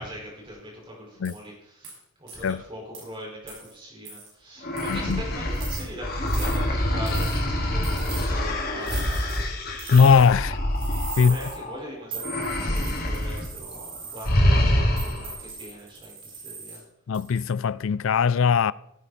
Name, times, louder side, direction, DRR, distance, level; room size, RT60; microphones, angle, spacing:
voice 1, 0.0-1.9 2.2-9.2 11.1-16.8, equal, 25° right, 5.2 m, -40 dB
sound 1, 1.2-1.4 1.8-2.0 2.3-2.5 2.9-3.0 3.5-3.7 4.1-4.3 4.8-5.1 5.5-5.8 6.3-6.6 7.1-7.4 7.8-8.3 8.8-9.4 9.8-10.4 10.8-11.6 12.1-14.3 15.0-16.8 17.1-17.5, right 5 dB, 60° right, 6.7 m, -39 dB
sound 2, 4.6-11.8 12.2-13.5 13.7-13.9 14.2-15.4, left 1 dB, 45° left, 2.5 m, -26 dB
voice 2, 4.9-5.2 9.9-10.6 11.2-11.4 17.1-18.7, left 5 dB, 65° left, 0.4 m, -20 dB
18.5 x 9.2 x 4.2 m
head